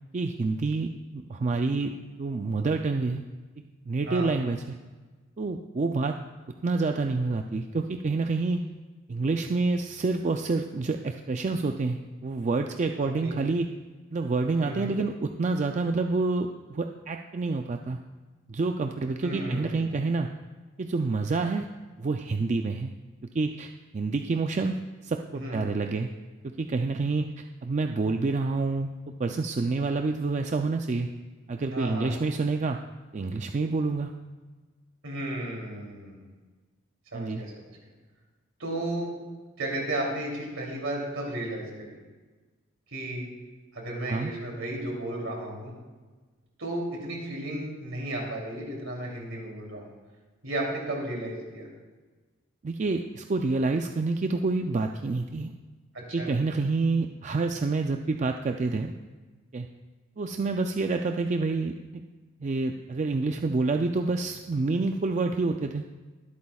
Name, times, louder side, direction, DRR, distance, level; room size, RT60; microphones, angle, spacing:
voice 1, 0.1-1.9 2.2-3.2 3.9-4.8 5.4-6.2 6.6-8.6 9.1-13.7 14.1-18.0 18.5-20.3 20.8-21.7 22.0-22.9 23.3-24.8 25.0-26.1 26.6-31.1 31.5-32.8 33.1-34.1 37.1-37.4 44.1-44.3 52.6-55.5 56.1-58.9 59.5-59.7 60.2-62.0 62.4-65.8, right 3 dB, 35° right, 5 dB, 0.4 m, -28 dB
voice 2, 13.0-13.4 14.6-15.0 19.2-20.0 25.3-25.6 31.7-32.1 35.0-36.3 37.1-37.6 38.6-39.1 39.6-42.0 42.9-43.3 43.7-45.7 46.6-49.9 50.4-51.7 55.9-56.3, right 1 dB, 70° right, -1 dB, 3.0 m, -34 dB
22.5 x 8.4 x 2.3 m, 1.3 s
head